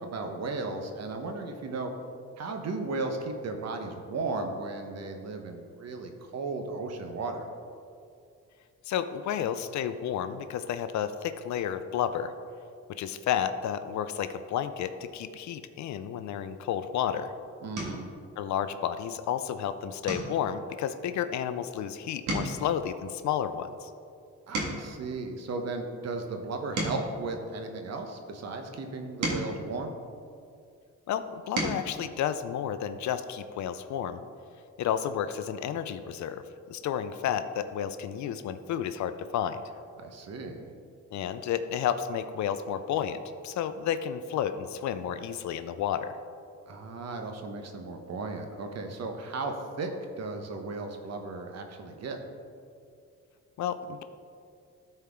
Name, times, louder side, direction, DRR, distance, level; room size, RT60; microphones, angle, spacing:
voice 1, 0.0-1.9 2.4-7.5 17.6-18.1 24.5-29.9 40.0-40.7 46.7-49.9 50.2-52.2, right 3 dB, 60° right, 4 dB, 1.1 m, -35 dB
voice 2, 8.9-12.3 12.9-17.3 18.4-23.9 31.1-34.2 34.8-39.6 41.1-46.2 53.6-54.0, left 9 dB, 70° left, 11 dB, 0.5 m, -31 dB
sound 1, 17.7-18.1 18.6-19.0 19.3-19.5 20.0-21.8 22.1-25.1 25.7-28.1 28.8-30.7 31.2-31.9 33.3-33.4 33.7-33.9, right 1 dB, 75° right, 1.7 m, -37 dB
13.0 x 4.4 x 3.6 m, 2.4 s
cardioid pair, 90°, 30 cm